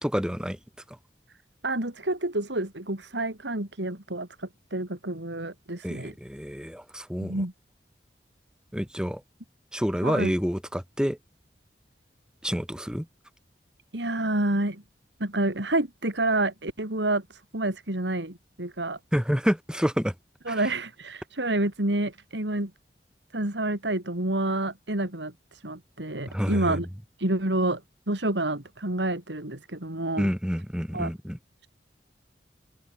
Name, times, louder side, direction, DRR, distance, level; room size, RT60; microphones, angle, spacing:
voice 1, 0.0-0.6 5.8-7.4 8.7-9.2 9.7-11.2 12.4-13.1 19.1-20.1 20.5-20.6 26.3-26.8 30.2-31.4, equal, 5° right, 2.7 m, -28 dB
voice 2, 1.6-6.1 7.2-7.5 10.0-10.3 13.9-14.8 15.2-19.0 20.4-22.7 23.3-26.9 27.2-27.8 28.1-30.3 30.9-31.1, right 2 dB, 90° right, 3.4 m, -28 dB
head